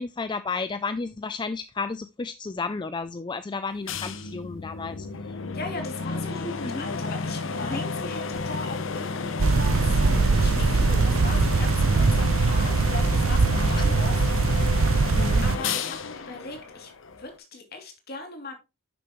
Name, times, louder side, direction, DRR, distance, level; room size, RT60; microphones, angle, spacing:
voice 1, 0.0-5.1 6.6-6.8 7.7-7.8 13.5-13.8 15.1-15.4, left 4 dB, 20° left, 0.4 m, -32 dB
sound 1, 3.9-17.4, left 4 dB, 65° left, 0.9 m, -32 dB
voice 2, 5.5-14.6 15.4-16.9 17.2-18.5, left 2 dB, 45° left, 2.8 m, -38 dB
sound 2, 9.4-15.6, right 4 dB, 75° right, 0.6 m, -21 dB
10.0 x 7.0 x 3.1 m
head